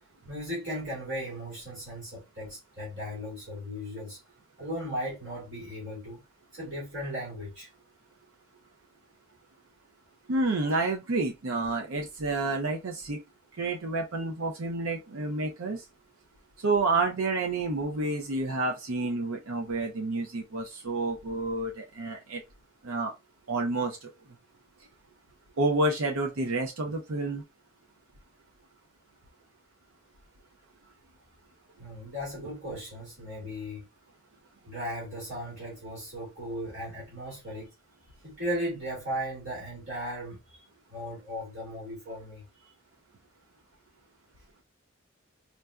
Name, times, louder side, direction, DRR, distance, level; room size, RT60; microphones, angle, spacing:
voice 1, 0.3-4.2 4.6-6.2 6.5-7.7 31.8-33.8 34.7-37.7 38.2-40.4 40.9-42.7, equal, 60° right, 2.2 m, -36 dB
voice 2, 10.3-13.2 13.6-15.8 16.6-22.4 22.8-23.1 23.5-24.1 25.6-27.4, right 2 dB, 80° right, 0.6 m, -29 dB
4.5 x 2.6 x 2.3 m
head